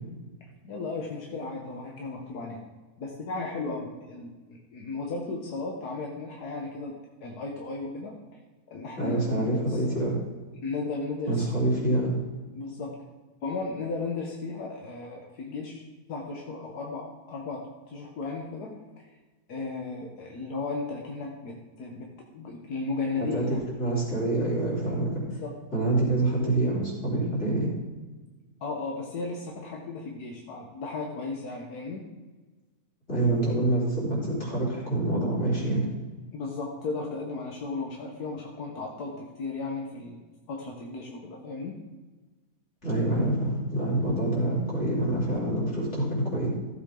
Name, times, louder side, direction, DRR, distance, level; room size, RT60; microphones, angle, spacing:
voice 1, 0.6-2.6 3.0-6.9 7.2-8.2 8.7-9.8 10.6-11.4 12.5-12.9 13.4-15.8 16.1-19.1 19.5-23.6 25.4-25.5 28.6-32.1 36.3-41.8, left 3 dB, 80° left, 0 dB, 1.7 m, -35 dB
voice 2, 9.0-10.2 11.3-12.2 23.2-23.5 23.8-25.4 25.7-27.7 33.1-35.9 42.8-46.5, right 2 dB, 45° left, -6 dB, 4.4 m, -26 dB
14.5 x 8.1 x 3.8 m, 1.3 s
omnidirectional pair, 1.6 m